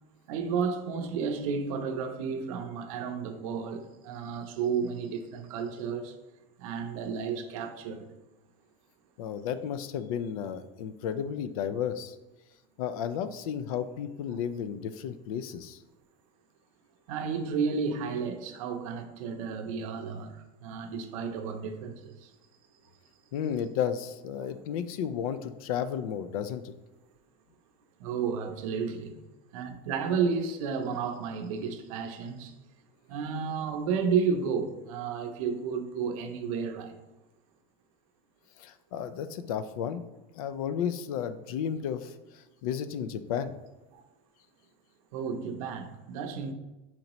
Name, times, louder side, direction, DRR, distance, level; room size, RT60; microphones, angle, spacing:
voice 1, 0.3-6.1 6.6-8.1 17.1-22.3 24.4-24.5 28.0-29.1 29.5-32.5 33.1-37.0 43.9-44.0 45.1-46.5, right 6 dB, 75° right, 0.6 m, -32 dB
voice 2, 9.2-12.2 12.8-15.8 23.3-26.7 38.6-40.0 40.3-43.5, left 8 dB, 90° left, 0.4 m, -33 dB
4.4 x 3.9 x 3.0 m
supercardioid pair, 155°, 18 cm